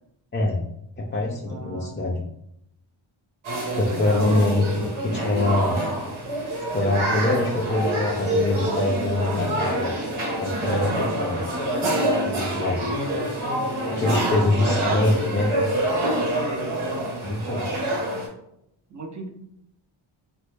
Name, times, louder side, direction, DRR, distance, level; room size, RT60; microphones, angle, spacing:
voice 1, 0.3-0.6 1.0-2.2 3.8-5.8 6.7-9.9 10.4-11.5 12.2-12.9 13.8-15.6 17.2-17.7, left 2 dB, 25° left, -3 dB, 0.4 m, -24 dB
voice 2, 1.5-1.9 3.8-4.3 10.7-11.2 14.0-15.3 16.3-16.7 18.9-19.3, right 2 dB, 35° right, 2 dB, 0.8 m, -32 dB
sound 1, 3.4-18.3, right 1 dB, 85° right, 1.1 m, -26 dB
3.1 x 2.2 x 3.3 m, 0.77 s
cardioid pair, 80°, 48 cm